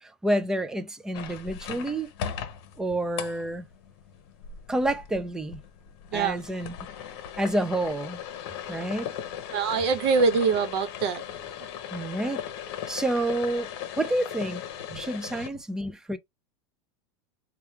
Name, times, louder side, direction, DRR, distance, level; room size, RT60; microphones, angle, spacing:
voice 1, 0.0-2.1 2.8-3.7 4.7-5.6 6.1-6.7 7.4-8.2 8.7-9.1 11.9-12.4 12.9-13.7 14.0-14.6 14.9-16.2, right 1 dB, 5° right, 0.3 m, -28 dB
sound 1, 1.1-15.5, left 9 dB, 60° left, 0.9 m, -38 dB
voice 2, 9.5-11.2 14.9-15.0, right 5 dB, 65° right, 1.0 m, -24 dB
3.3 x 2.3 x 4.4 m
supercardioid pair, 155°, 15 cm